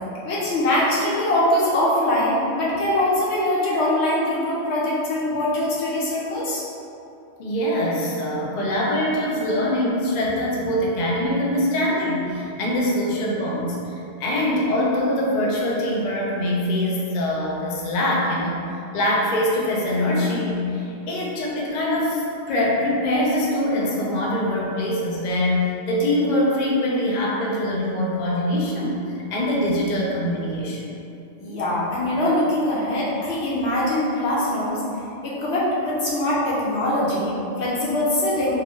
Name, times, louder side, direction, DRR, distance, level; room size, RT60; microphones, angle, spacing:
voice 1, 0.2-6.6 31.4-34.8 35.2-38.5, left 1 dB, 80° left, -7 dB, 1.1 m, -22 dB
voice 2, 7.4-18.6 18.9-29.0 29.3-30.9, left 1 dB, 50° left, -3 dB, 0.6 m, -23 dB
3.4 x 2.9 x 3.0 m, 2.7 s
omnidirectional pair, 1.1 m